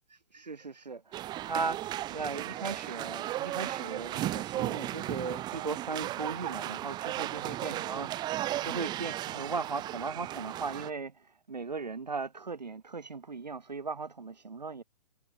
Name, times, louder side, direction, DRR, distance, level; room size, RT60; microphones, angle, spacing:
voice 1, 0.1-14.8, right 4 dB, 80° right, 2.1 m, -37 dB
sound 1, 1.1-10.9, right 14 dB, 20° right, 1.7 m, -35 dB
figure-of-eight pair, 130°, 21 cm